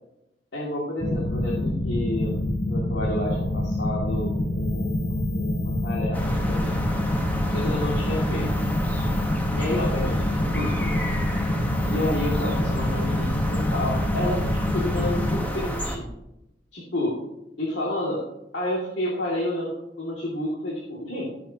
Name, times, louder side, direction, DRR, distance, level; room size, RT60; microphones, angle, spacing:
voice 1, 0.5-6.8 7.5-8.5 9.5-11.0 11.8-16.1 16.7-17.1 17.6-18.2 18.5-21.3, left 1 dB, 75° left, -4 dB, 2.5 m, -30 dB
sound 1, 1.0-15.5, left 1 dB, 40° left, 0.9 m, -26 dB
sound 2, 6.1-16.0, equal, 10° left, 1.3 m, -30 dB
17.5 x 7.3 x 2.9 m, 0.88 s
head